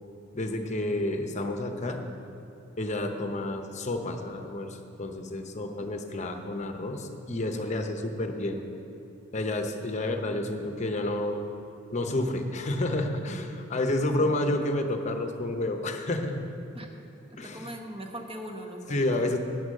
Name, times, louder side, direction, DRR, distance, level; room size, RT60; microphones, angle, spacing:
voice 1, 0.3-2.0 2.8-8.6 9.3-11.4 11.9-16.5 17.4-17.7 18.9-19.4, left 1 dB, 35° left, 5 dB, 0.8 m, -30 dB
voice 2, 14.1-14.6 16.7-16.9 17.3-19.3, equal, 30° right, 3 dB, 1.0 m, -41 dB
9.3 x 8.0 x 6.4 m, 2.8 s
head